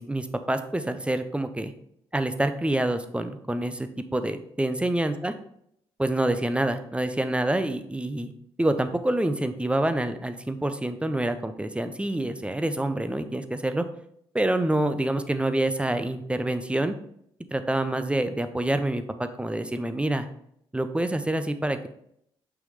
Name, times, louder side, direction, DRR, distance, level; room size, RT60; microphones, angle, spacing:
voice 1, 0.0-1.7 2.1-5.3 6.0-8.3 8.6-13.8 14.3-16.9 17.5-20.2 20.7-21.9, right 1 dB, 10° right, 9 dB, 0.6 m, -27 dB
5.9 x 5.8 x 3.2 m, 0.71 s
figure-of-eight pair, 40°, 14 cm